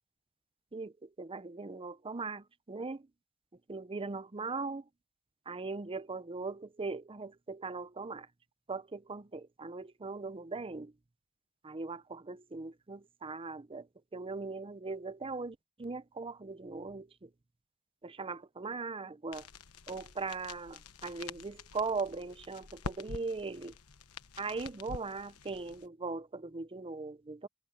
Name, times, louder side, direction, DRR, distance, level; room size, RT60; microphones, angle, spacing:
voice 1, 0.7-3.1 3.7-4.9 5.5-8.3 8.7-10.9 11.6-17.3 18.0-19.5 19.9-23.8 24.4-27.5, right 4 dB, 25° right, 0.6 m, -39 dB
sound 1, 19.3-25.9, left 4 dB, 80° left, 1.1 m, -47 dB
head